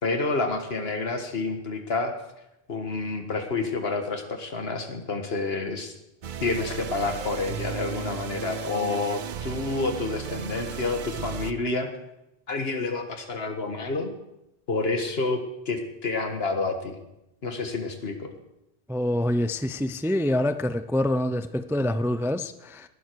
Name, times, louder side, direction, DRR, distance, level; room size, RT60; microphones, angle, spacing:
voice 1, 0.0-2.1 2.7-5.9 6.4-11.9 12.5-14.1 14.7-15.4 15.7-17.0 17.4-18.3, left 3 dB, 70° left, 6 dB, 1.9 m, -29 dB
sound 1, 6.2-11.5, right 8 dB, 55° right, 0.7 m, -35 dB
voice 2, 18.9-22.8, left 1 dB, 5° right, 12 dB, 0.4 m, -26 dB
18.5 x 12.0 x 4.7 m, 0.89 s
omnidirectional pair, 1.1 m